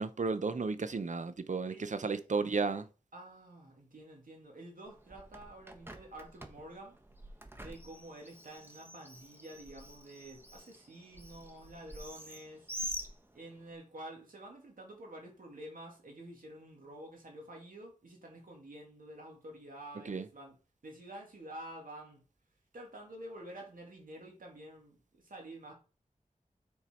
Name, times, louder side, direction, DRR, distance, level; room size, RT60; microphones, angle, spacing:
voice 1, 0.0-2.9 19.9-20.3, right 4 dB, 60° right, 0.7 m, -33 dB
voice 2, 1.7-2.0 3.1-7.0 7.6-12.7 13.3-20.6 20.8-22.2 22.7-25.7, right 1 dB, 75° right, 2.4 m, -49 dB
Bird, 4.9-13.7, right 1 dB, 15° right, 1.1 m, -47 dB
6.9 x 4.6 x 4.5 m
wide cardioid pair, 60°, 14 cm